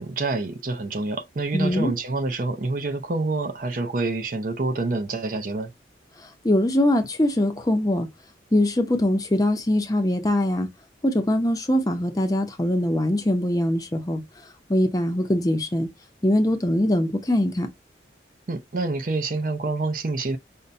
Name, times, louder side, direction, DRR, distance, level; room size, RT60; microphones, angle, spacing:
voice 1, 0.0-5.7 18.5-20.4, right 3 dB, 45° right, 0.5 m, -27 dB
voice 2, 1.5-1.9 6.2-8.1 8.5-10.7 11.0-14.2 14.7-15.9 16.2-17.7, left 1 dB, 20° left, 0.6 m, -22 dB
5.3 x 2.2 x 2.5 m
head